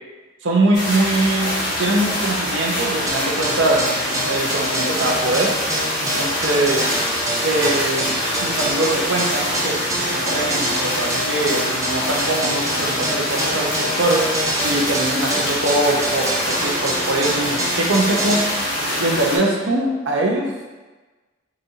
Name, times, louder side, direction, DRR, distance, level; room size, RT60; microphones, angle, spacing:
voice 1, 0.4-1.5 1.8-3.9 4.3-5.5 6.0-6.8 7.4-8.1 8.4-14.3 14.6-18.4 19.0-20.7, right 2 dB, 70° right, 0 dB, 0.7 m, -22 dB
sound 1, 0.7-19.4, equal, 55° left, 1.3 m, -25 dB
sound 2, 3.1-18.4, right 1 dB, 15° right, 0.5 m, -26 dB
4.9 x 2.6 x 2.8 m, 1.2 s
head